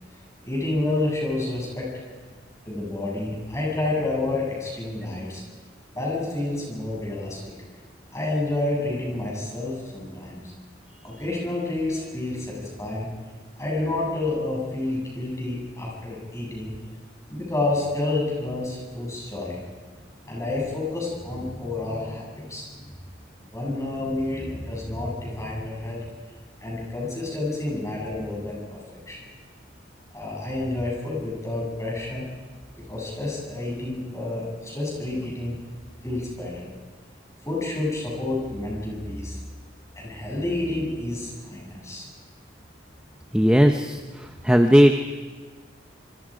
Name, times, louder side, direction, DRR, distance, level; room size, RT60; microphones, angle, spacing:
voice 1, 0.4-1.9 2.6-5.4 5.9-7.5 8.1-10.4 11.0-13.1 13.6-16.7 17.3-19.6 20.2-22.9 23.5-26.0 26.6-29.2 30.1-32.2 32.9-35.5 36.0-36.7 37.4-39.4 40.0-42.1, left 2 dB, 15° left, -4 dB, 8.0 m, -29 dB
voice 2, 43.3-45.0, equal, 5° right, 5 dB, 0.8 m, -17 dB
27.5 x 25.0 x 5.2 m, 1.4 s
head